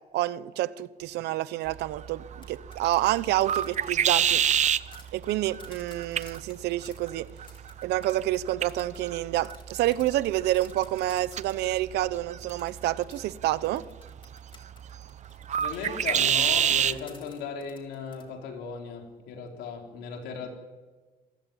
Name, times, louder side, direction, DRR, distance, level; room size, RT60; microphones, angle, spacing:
voice 1, 0.1-4.4 5.1-7.3 7.8-13.8, right 15 dB, 80° right, 0.9 m, -28 dB
sound 1, 1.7-17.0, right 9 dB, 45° right, 0.8 m, -30 dB
sound 2, 2.3-11.9 12.5-18.2, left 4 dB, 30° left, 3.6 m, -54 dB
voice 2, 15.5-20.5, left 5 dB, 90° left, 4.2 m, -37 dB
27.0 x 15.5 x 9.0 m
cardioid pair, 110°, 17 cm